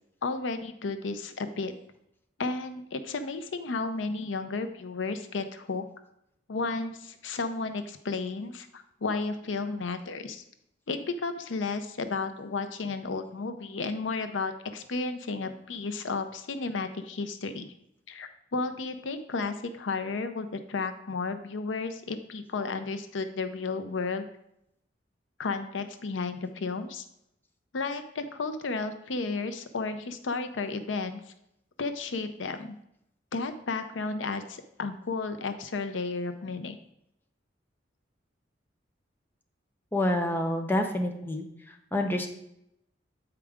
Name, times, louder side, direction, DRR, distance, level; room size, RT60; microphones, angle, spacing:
voice 1, 0.2-1.7 2.4-5.8 6.5-10.4 10.9-17.7 18.1-24.2 25.4-27.0 27.7-31.2 31.8-32.7 33.3-36.8, left 3 dB, 85° left, 9 dB, 0.6 m, -33 dB
voice 2, 39.9-41.4 41.9-42.3, left 1 dB, 10° left, 3 dB, 0.7 m, -27 dB
8.3 x 4.8 x 3.5 m, 0.78 s
head